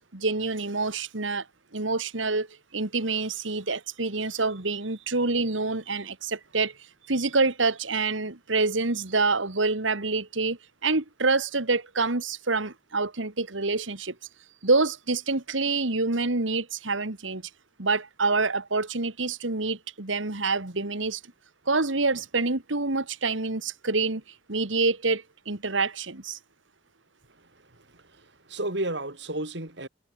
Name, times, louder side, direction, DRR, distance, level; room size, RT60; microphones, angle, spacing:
voice 1, 0.1-1.4 1.7-2.5 2.7-6.7 7.1-14.2 14.6-17.4 17.8-21.2 21.7-24.2 24.5-26.4, right 3 dB, 90° right, 2.3 m, -27 dB
voice 2, 27.3-29.9, right 1 dB, 70° right, 4.4 m, -34 dB
head